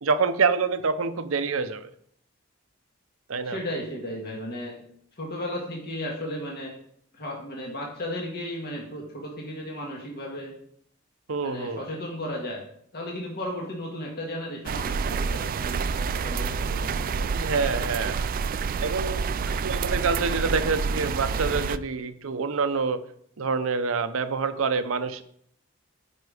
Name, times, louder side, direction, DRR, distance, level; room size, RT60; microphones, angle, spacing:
voice 1, 0.0-1.9 3.3-3.6 11.3-11.8 17.4-18.2 18.8-23.0 23.4-25.2, right 4 dB, 80° right, 10 dB, 0.7 m, -26 dB
voice 2, 3.4-4.8 5.2-6.7 7.1-10.5 11.4-12.6 12.9-17.3, left 1 dB, 50° left, -2 dB, 1.8 m, -35 dB
sound 1, 14.7-21.8, right 5 dB, 45° right, 0.3 m, -28 dB
9.5 x 5.3 x 4.9 m, 0.67 s
head